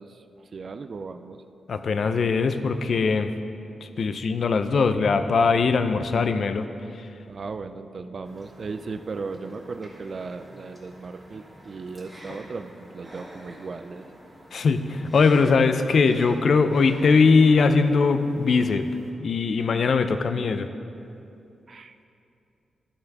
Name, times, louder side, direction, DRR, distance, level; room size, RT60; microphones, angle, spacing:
voice 1, 0.0-1.4 7.3-14.1 21.7-22.0, right 4 dB, 45° right, 9 dB, 0.3 m, -37 dB
voice 2, 1.7-3.3 3.8-6.7 14.5-18.9 19.2-20.7, left 4 dB, 55° left, 9 dB, 0.4 m, -21 dB
sound 1, 8.3-19.1, equal, ahead, 2.0 m, -47 dB
13.0 x 4.4 x 5.3 m, 2.7 s
wide cardioid pair, 120°, 0 cm